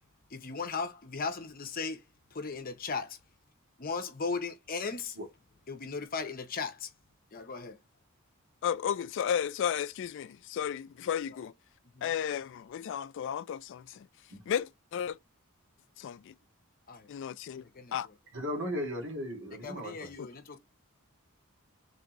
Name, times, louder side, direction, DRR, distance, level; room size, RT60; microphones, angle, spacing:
voice 1, 0.3-2.0 2.3-3.2 3.8-5.2 5.7-6.9 7.3-7.8 11.3-11.4 11.9-12.1 16.9-17.1 17.6-18.1 19.6-20.6, left 4 dB, 40° left, 0.7 m, -37 dB
voice 2, 8.6-11.5 12.0-14.1 14.5-15.2 16.0-16.3 17.1-17.6 17.9-18.1 20.2-20.3, left 8 dB, 60° left, 0.3 m, -33 dB
voice 3, 18.3-20.1, equal, 60° right, 1.8 m, -36 dB
3.8 x 3.4 x 2.8 m
head